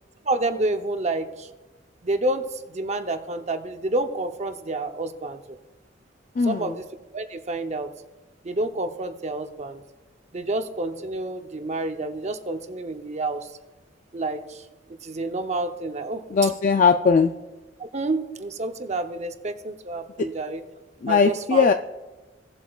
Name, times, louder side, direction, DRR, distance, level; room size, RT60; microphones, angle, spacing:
voice 1, 0.2-1.5 2.0-5.6 6.5-6.9 7.1-7.9 8.4-9.8 10.3-13.5 14.1-14.7 15.0-16.5 17.8-20.6 21.1-21.6, right 2 dB, 40° right, 7 dB, 0.7 m, -29 dB
voice 2, 6.4-6.7 16.3-17.3 20.2-20.3 21.0-21.7, left 5 dB, 45° left, 7 dB, 0.3 m, -19 dB
17.0 x 7.5 x 2.3 m, 1.2 s
head